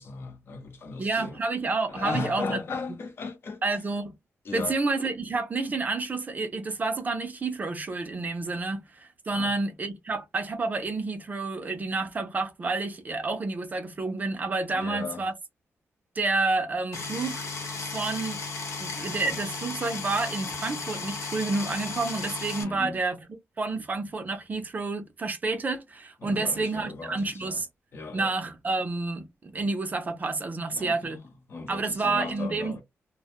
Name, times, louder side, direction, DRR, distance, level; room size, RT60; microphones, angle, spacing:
voice 1, 0.0-1.4 1.9-3.6 4.4-4.8 9.3-9.6 14.7-15.2 22.6-23.0 26.2-27.6 27.9-28.3 30.7-31.1 31.5-32.8, left 4 dB, 50° left, 0.7 m, -36 dB
voice 2, 1.0-2.6 3.6-4.2 4.5-15.3 16.2-17.5 17.9-18.4 18.8-23.2 23.6-27.7 28.1-31.2 31.7-32.8, right 3 dB, 35° right, 0.5 m, -29 dB
sound 1, 16.9-22.6, left 4 dB, 80° left, 0.9 m, -35 dB
2.1 x 2.1 x 2.9 m
wide cardioid pair, 125°, 5 cm